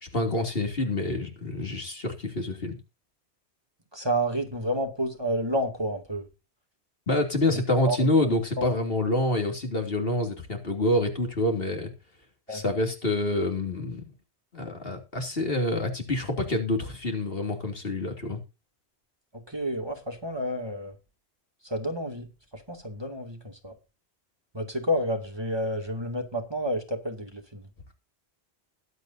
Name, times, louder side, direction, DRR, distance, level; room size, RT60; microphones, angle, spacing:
voice 1, 0.0-2.8 7.1-11.9 12.5-14.0 14.5-18.4, left 1 dB, 60° left, 3.0 m, -27 dB
voice 2, 3.9-6.3 7.5-8.0 8.2-8.6 12.5-12.6 19.3-20.9 21.6-23.7 24.5-27.6, equal, 25° right, 2.5 m, -30 dB
21.5 x 8.2 x 2.7 m
omnidirectional pair, 1.1 m